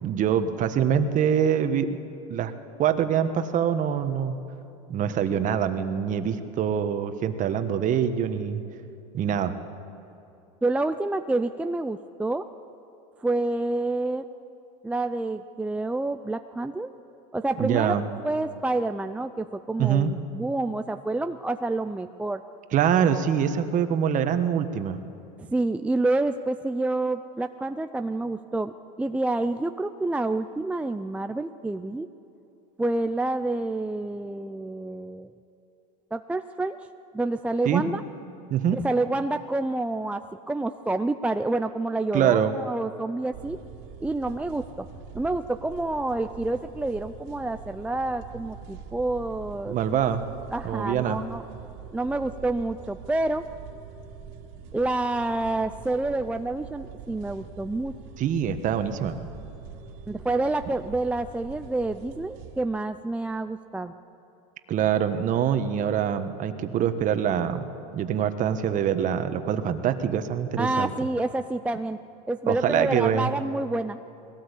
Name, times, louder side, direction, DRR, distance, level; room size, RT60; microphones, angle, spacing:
voice 1, 0.0-2.0 2.3-2.5 2.8-4.4 4.9-8.6 9.1-9.5 17.6-18.1 19.8-20.1 22.7-25.0 37.6-37.8 38.5-38.8 42.1-42.5 49.7-50.2 50.6-51.2 58.2-59.2 64.7-67.7 67.9-70.9 72.5-73.3, right 8 dB, 40° right, 9 dB, 1.4 m, -24 dB
voice 2, 10.6-12.5 13.2-14.2 14.8-16.9 17.3-18.0 18.2-22.4 25.4-28.7 29.0-32.1 32.8-35.3 36.1-36.9 37.1-38.0 38.7-43.6 44.0-44.9 45.1-49.8 50.5-51.4 51.9-53.5 54.7-57.9 60.1-64.0 70.6-72.0 72.3-74.0, right 2 dB, 5° right, 8 dB, 0.5 m, -28 dB
sound 1, 43.3-62.6, right 6 dB, 60° right, 2.3 m, -44 dB
21.0 x 17.5 x 8.4 m, 2.8 s
supercardioid pair, 120°, 21 cm